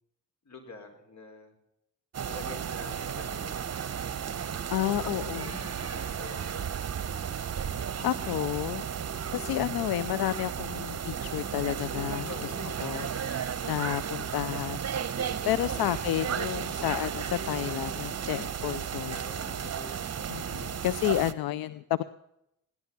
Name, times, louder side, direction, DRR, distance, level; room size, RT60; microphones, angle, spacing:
voice 1, 0.4-1.5 2.3-3.5 4.8-6.9 12.3-12.8 15.7-16.2 19.1-20.6, left 3 dB, 50° left, 4 dB, 4.9 m, -47 dB
sound 1, 2.1-21.3, right 8 dB, 45° right, 1.1 m, -34 dB
voice 2, 4.7-5.6 8.0-8.8 9.3-12.3 12.8-13.1 13.4-14.8 15.4-19.1 20.3-22.0, left 13 dB, 85° left, 15 dB, 0.7 m, -31 dB
17.0 x 12.0 x 5.9 m, 0.79 s
cardioid pair, 65°, 35 cm